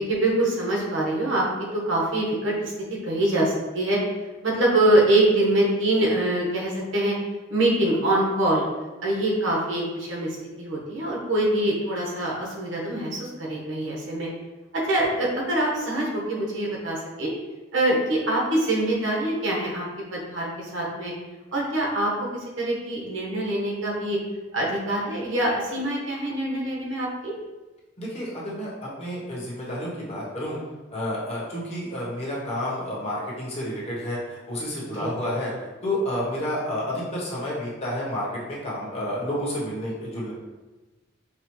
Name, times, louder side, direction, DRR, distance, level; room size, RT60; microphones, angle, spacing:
voice 1, 0.0-1.4 1.7-2.7 3.0-4.0 4.4-7.1 7.5-8.6 9.0-14.3 14.7-17.3 17.7-19.9 20.1-21.1 21.5-24.2 24.5-27.3 35.0-35.1, right 1 dB, 90° right, -3 dB, 1.2 m, -24 dB
voice 2, 28.0-30.6 30.9-35.5 35.8-40.3, equal, 35° left, -6 dB, 1.2 m, -30 dB
5.8 x 2.3 x 3.1 m, 1.2 s
head